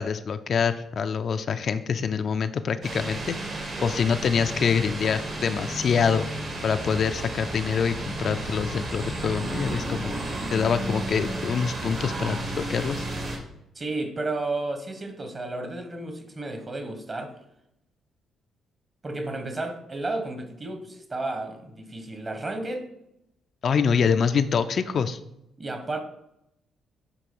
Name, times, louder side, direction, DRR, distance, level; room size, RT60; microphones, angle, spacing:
voice 1, 0.0-3.4 3.8-6.3 6.6-10.1 10.5-13.0 23.6-25.2, left 6 dB, 55° left, 9 dB, 0.4 m, -25 dB
sound 1, 2.8-13.4, right 1 dB, 55° right, 2.2 m, -32 dB
voice 2, 13.7-17.3 19.0-22.9 25.6-26.0, right 2 dB, 30° right, 6 dB, 1.4 m, -32 dB
9.1 x 3.8 x 5.4 m, 0.84 s
cardioid pair, 90°, 0 cm